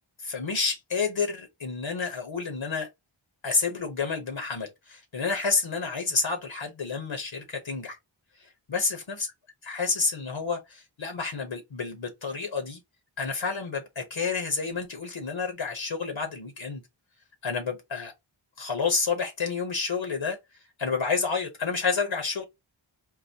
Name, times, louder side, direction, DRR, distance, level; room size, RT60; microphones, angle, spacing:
voice 1, 0.2-2.9 3.4-8.0 8.4-9.3 9.7-12.8 13.2-16.8 17.4-18.1 18.6-20.4 20.8-22.4, left 4 dB, 65° left, 1.0 m, -29 dB
3.9 x 2.3 x 2.8 m
cardioid pair, 40°, 49 cm